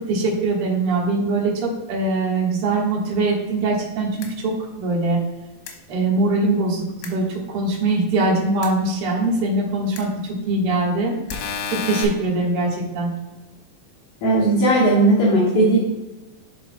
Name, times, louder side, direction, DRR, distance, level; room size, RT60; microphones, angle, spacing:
voice 1, 0.1-4.5 4.8-5.2 5.9-10.1 10.5-11.1 11.7-13.1, right 2 dB, 60° right, -4 dB, 1.5 m, -22 dB
sound 1, 4.2-4.3 5.7-5.8 7.0-7.1 8.6-8.7 10.0-10.1 11.3-12.1, left 6 dB, 90° left, 3.2 m, -29 dB
voice 2, 14.2-15.8, right 1 dB, 65° left, -9 dB, 3.1 m, -16 dB
9.7 x 5.7 x 2.3 m, 1.1 s
omnidirectional pair, 5.0 m